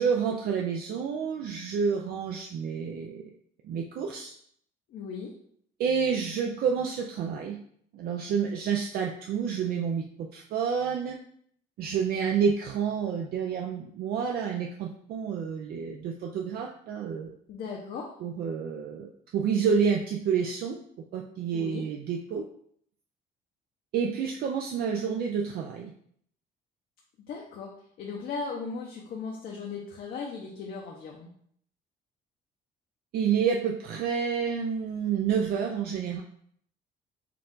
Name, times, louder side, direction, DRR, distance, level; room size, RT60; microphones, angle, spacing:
voice 1, 0.0-3.2 3.6-4.3 5.8-7.6 7.9-10.0 10.3-11.2 11.8-17.3 18.2-20.8 21.1-22.4 23.9-25.9 33.1-36.2, right 6 dB, 65° right, 1 dB, 0.5 m, -29 dB
voice 2, 4.9-5.3 17.5-18.1 21.5-21.8 27.3-27.7 28.0-31.3, left 5 dB, 65° left, -1 dB, 0.7 m, -37 dB
4.5 x 2.4 x 3.8 m, 0.65 s
cardioid pair, 110°, 17 cm